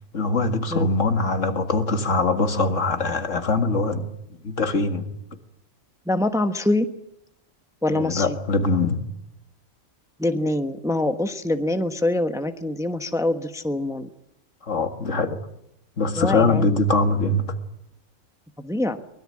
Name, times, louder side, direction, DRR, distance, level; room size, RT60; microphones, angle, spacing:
voice 1, 0.1-4.1 4.4-5.1 7.9-9.0 14.7-15.4 16.0-17.5, left 3 dB, 70° left, 2.3 m, -22 dB
voice 2, 6.1-6.8 7.8-8.4 10.2-14.1 16.2-16.7 18.6-19.0, left 1 dB, 5° right, 1.1 m, -24 dB
23.5 x 21.0 x 8.7 m
omnidirectional pair, 1.3 m